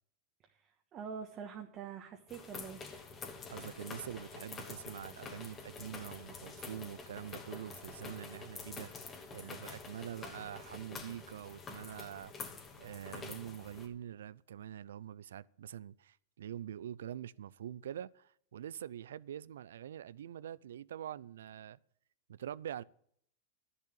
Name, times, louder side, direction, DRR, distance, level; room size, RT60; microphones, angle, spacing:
voice 1, 0.4-3.1, right 7 dB, 35° right, 1.4 m, -46 dB
sound 1, 2.3-13.9, left 4 dB, 25° left, 2.4 m, -47 dB
voice 2, 3.5-12.5 12.8-21.8 22.3-22.8, right 10 dB, 85° right, 0.4 m, -45 dB
11.5 x 7.0 x 8.1 m
hypercardioid pair, 120°, 0 cm